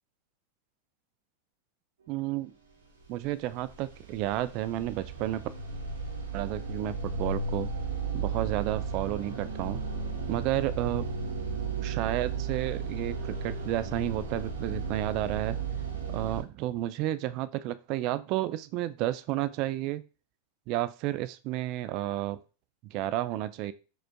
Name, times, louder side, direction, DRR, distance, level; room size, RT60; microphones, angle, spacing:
voice 1, 2.1-2.5 3.1-5.5 6.3-7.7 8.1-9.8 10.3-11.1 11.8-15.6 16.1-20.0 20.7-22.4 22.9-23.7, right 14 dB, 50° right, 14 dB, 0.3 m, -31 dB
sound 1, 3.2-16.4, right 4 dB, 85° right, 1.0 m, -34 dB
5.0 x 2.4 x 2.2 m, 0.33 s
hypercardioid pair, 100°, 0 cm